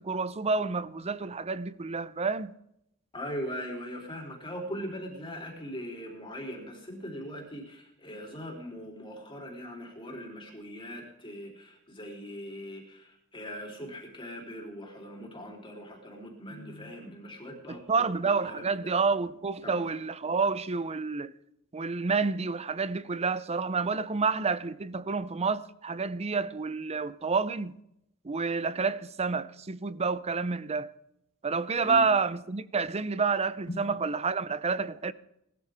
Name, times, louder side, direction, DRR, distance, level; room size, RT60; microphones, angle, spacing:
voice 1, 0.0-2.5 17.7-21.3 21.7-27.8 28.2-30.9 31.4-35.1, right 4 dB, 30° right, 0.6 m, -29 dB
voice 2, 3.1-18.9 19.6-19.9 31.8-32.1, equal, 25° left, 3.6 m, -40 dB
19.5 x 13.0 x 3.6 m
head